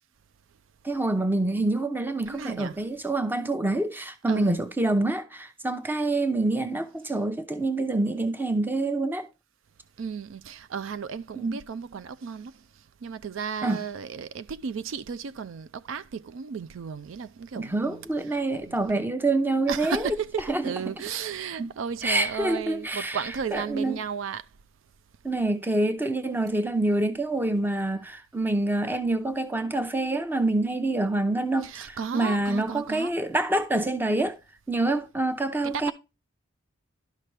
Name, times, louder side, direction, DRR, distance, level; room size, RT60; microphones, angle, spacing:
voice 1, 0.8-9.3 11.4-11.6 13.6-13.9 17.5-21.0 21.6-21.7 22.0-24.0 25.2-34.4 34.7-35.9, right 2 dB, 10° right, 0.6 m, -26 dB
voice 2, 2.3-2.8 4.3-4.5 10.0-12.5 13.0-18.0 18.7-18.8 19.7-24.4 31.6-33.1 35.6-35.9, right 6 dB, 70° right, 0.4 m, -34 dB
11.5 x 5.8 x 3.3 m
head